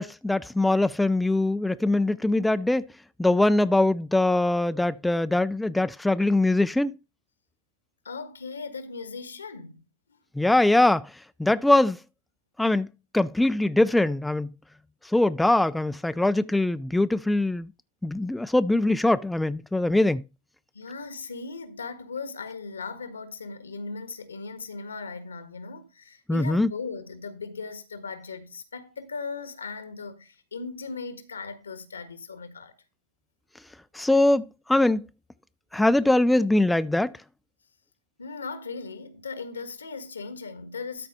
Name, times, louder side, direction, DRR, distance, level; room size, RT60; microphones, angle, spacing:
voice 1, 0.0-2.8 3.2-6.9 10.4-11.1 11.4-12.0 12.6-12.9 13.1-14.5 15.1-17.7 18.0-20.2 26.3-26.7 33.9-35.0 35.7-37.1, left 2 dB, 5° left, 0.4 m, -22 dB
voice 2, 8.0-9.8 20.7-32.7 34.0-34.1 38.2-41.1, left 4 dB, 85° left, 1.5 m, -38 dB
12.5 x 4.3 x 5.3 m
hypercardioid pair, 105°, 0 cm